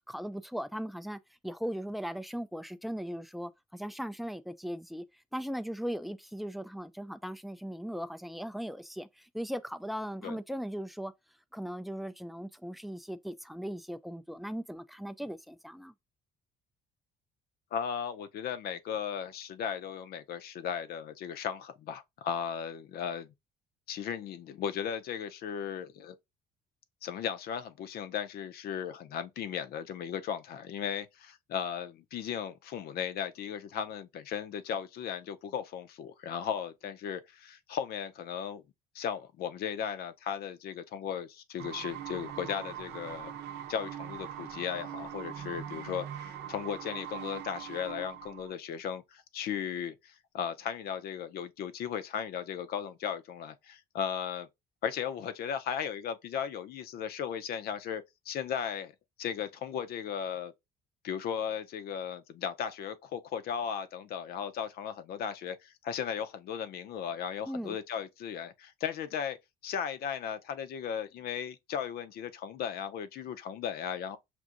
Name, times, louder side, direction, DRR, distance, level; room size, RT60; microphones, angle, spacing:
voice 1, 0.1-5.0 5.3-11.1 11.5-15.9 67.5-67.8, equal, ahead, 0.3 m, -38 dB
voice 2, 17.7-23.3 23.9-26.2 27.0-38.6 38.9-43.3 43.7-54.5 54.8-58.9 59.2-60.5 61.0-69.4 69.6-74.2, left 8 dB, 65° left, 0.6 m, -36 dB
sound 1, 41.6-48.5, right 10 dB, 85° right, 0.7 m, -42 dB
6.0 x 2.6 x 2.5 m
cardioid pair, 110°, 17 cm